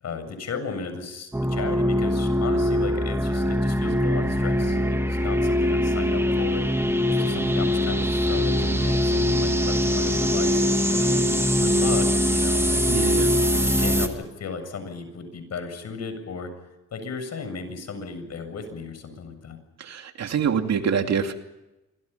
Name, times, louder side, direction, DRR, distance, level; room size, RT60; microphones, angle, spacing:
voice 1, 0.0-6.6 7.1-11.2 11.6-12.9 13.5-16.5 16.9-19.6, left 5 dB, 60° left, 8 dB, 7.5 m, -35 dB
sound 1, 1.3-14.1, equal, 10° right, 2.9 m, -22 dB
voice 2, 12.9-13.3 19.8-21.3, right 7 dB, 60° right, 6 dB, 2.6 m, -25 dB
27.0 x 25.0 x 5.7 m, 0.97 s
cardioid pair, 90°, 30 cm